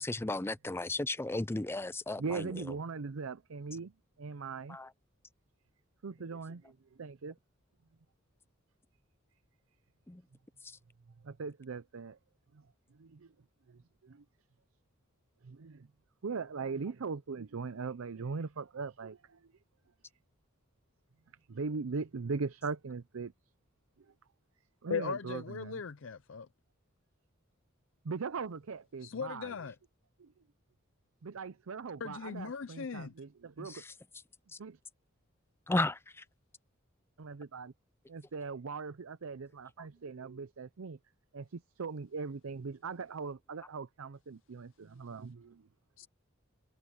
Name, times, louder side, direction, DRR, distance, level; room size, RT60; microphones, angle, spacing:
voice 1, 0.0-2.5 4.7-4.9 10.1-10.2 33.6-33.9 35.7-36.2, left 2 dB, 10° left, 0.5 m, -34 dB
voice 2, 2.2-3.9 4.2-4.8 6.0-7.4 11.2-12.2 12.5-12.6 12.9-13.3 13.7-14.2 15.4-15.9 16.2-19.5 21.5-23.3 24.8-25.8 28.0-29.6 30.2-30.3 31.2-33.8 34.6-34.8 37.2-37.7 38.1-41.0 41.3-45.7, right 4 dB, 85° right, 0.6 m, -40 dB
voice 3, 24.9-26.5 29.0-29.8 32.0-33.1 46.0-46.1, left 6 dB, 70° left, 0.5 m, -38 dB
head